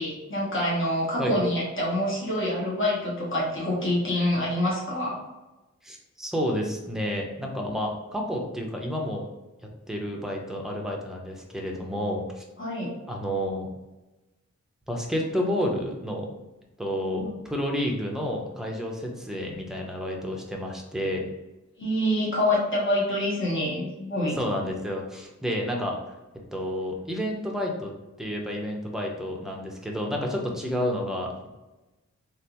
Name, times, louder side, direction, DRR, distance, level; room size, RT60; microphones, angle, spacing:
voice 1, 0.0-5.2 12.6-12.9 21.8-24.4, left 1 dB, 40° left, -5 dB, 1.0 m, -26 dB
voice 2, 5.8-9.3 9.9-12.4 13.1-13.7 14.9-16.3 16.8-21.2 24.3-26.0 26.5-27.9 28.2-31.5, equal, ahead, 0 dB, 0.6 m, -30 dB
3.3 x 2.5 x 2.8 m, 1.1 s
wide cardioid pair, 85°, 29 cm